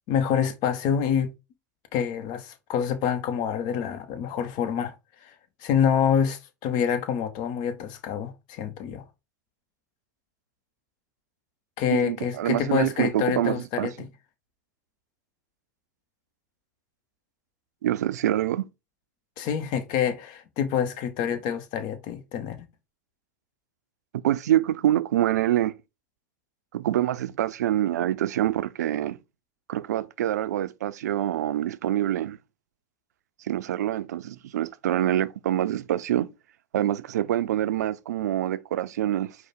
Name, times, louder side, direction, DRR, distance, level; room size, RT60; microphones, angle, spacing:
voice 1, 0.1-1.3 1.9-4.9 5.2-5.3 5.6-9.0 11.8-14.1 19.4-22.6, left 8 dB, 55° left, 0.9 m, -27 dB
voice 2, 11.9-13.9 17.8-18.7 24.1-25.8 26.7-29.2 29.7-32.4 33.4-36.3 36.7-39.4, right 12 dB, 85° right, 0.4 m, -26 dB
4.9 x 2.1 x 4.2 m
hypercardioid pair, 90°, 9 cm